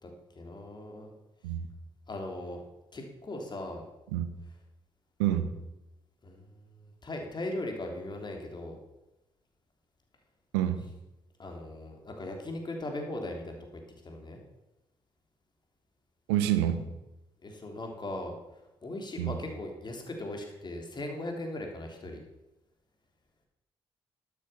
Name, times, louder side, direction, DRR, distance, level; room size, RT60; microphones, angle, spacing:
voice 1, 0.3-1.1 2.1-2.6 2.9-3.8 6.2-8.8 11.4-13.6 14.0-14.4 17.4-18.4 18.8-22.2, left 1 dB, 35° left, 2 dB, 3.3 m, -38 dB
voice 2, 5.2-5.5 10.5-10.8 16.3-16.8 19.2-19.3, right 11 dB, 70° right, 10 dB, 1.0 m, -27 dB
12.0 x 8.8 x 6.9 m, 0.96 s
figure-of-eight pair, 40°, 13 cm